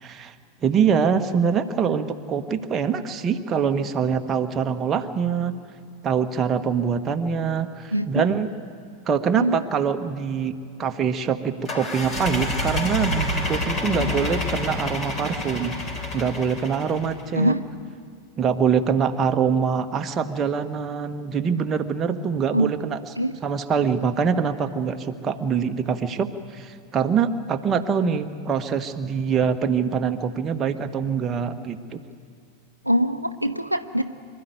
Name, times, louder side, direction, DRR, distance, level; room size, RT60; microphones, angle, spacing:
voice 1, 0.0-0.3 0.6-5.5 6.0-8.5 9.1-10.5 10.8-15.8 16.1-17.5 18.4-23.0 23.4-32.0, right 6 dB, 25° right, 6 dB, 1.2 m, -24 dB
voice 2, 7.9-8.2 9.3-9.6 13.8-14.3 17.4-17.6 22.5-22.7 23.2-23.4 32.8-34.0, equal, 90° right, 8 dB, 0.8 m, -23 dB
sound 1, 11.6-17.2, left 1 dB, 25° left, 4.5 m, -28 dB
25.5 x 13.0 x 9.3 m, 2.2 s
figure-of-eight pair, 90°, 0 cm